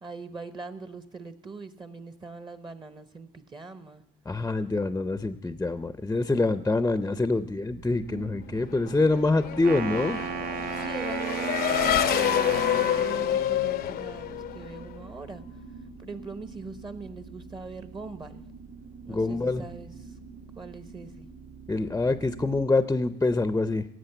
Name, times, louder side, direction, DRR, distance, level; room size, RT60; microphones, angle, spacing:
voice 1, 0.0-4.0 8.5-8.7 10.7-15.6 16.0-18.4 19.0-20.2 20.6-21.3, right 4 dB, 30° right, 11 dB, 0.9 m, -41 dB
voice 2, 4.3-10.2 19.1-19.6 21.7-23.8, left 3 dB, 10° left, 12 dB, 0.6 m, -25 dB
sound 1, 7.7-22.7, right 5 dB, 75° right, 1.8 m, -46 dB
Race car auto racing / Accelerating revving vroom, 8.9-15.0, left 12 dB, 65° left, 0.6 m, -28 dB
Wind instrument woodwind instrument, 9.5-13.5, right 7 dB, 60° right, 0.8 m, -33 dB
17.5 x 7.8 x 7.9 m, 0.81 s
cardioid pair, 110°, 17 cm